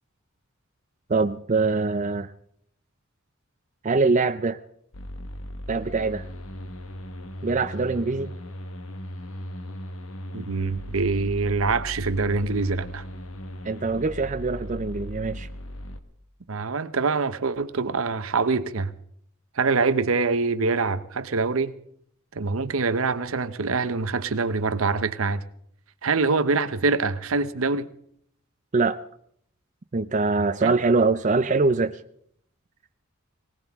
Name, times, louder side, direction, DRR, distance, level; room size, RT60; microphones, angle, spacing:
voice 1, 1.1-2.3 3.8-4.6 5.7-6.3 7.4-8.3 13.6-15.5 28.7-29.0 29.9-31.9, right 3 dB, 35° right, 9 dB, 0.5 m, -23 dB
sound 1, 4.9-16.0, equal, 75° left, 1.3 m, -37 dB
voice 2, 10.3-13.0 16.5-18.9 19.6-21.7 22.3-25.4 26.0-27.9 30.6-30.7, right 4 dB, 80° right, 12 dB, 0.9 m, -24 dB
19.5 x 19.0 x 3.6 m, 0.66 s
head